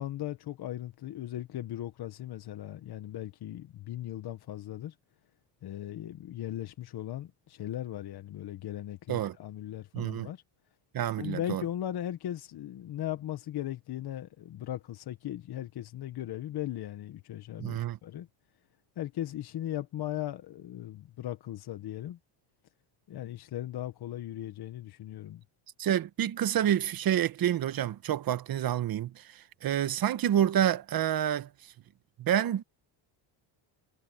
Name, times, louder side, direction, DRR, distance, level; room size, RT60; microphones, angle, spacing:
voice 1, 0.0-4.9 5.6-10.4 11.2-18.3 19.0-22.2 23.1-25.4, left 12 dB, 50° left, 1.3 m, -38 dB
voice 2, 9.9-10.3 10.9-11.6 17.6-18.0 25.8-31.5 32.2-32.6, right 10 dB, 45° right, 1.3 m, -28 dB
cardioid pair, 130°, 50 cm